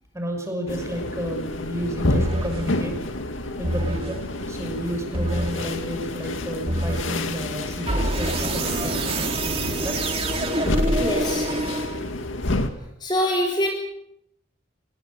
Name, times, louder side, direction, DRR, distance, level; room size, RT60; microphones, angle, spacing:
voice 1, 0.1-3.1 3.6-10.0 10.4-11.2, equal, 15° right, 4 dB, 6.0 m, -32 dB
sound 1, 0.7-12.7, left 1 dB, 85° left, 2.3 m, -29 dB
sound 2, 2.1-2.7 3.6-4.2 5.1-5.7 6.7-7.2 7.9-12.3, right 1 dB, 30° right, 2.7 m, -26 dB
voice 2, 10.9-11.5 13.0-13.7, left 1 dB, 20° left, -1 dB, 3.6 m, -25 dB
26.5 x 20.5 x 6.5 m, 0.77 s
head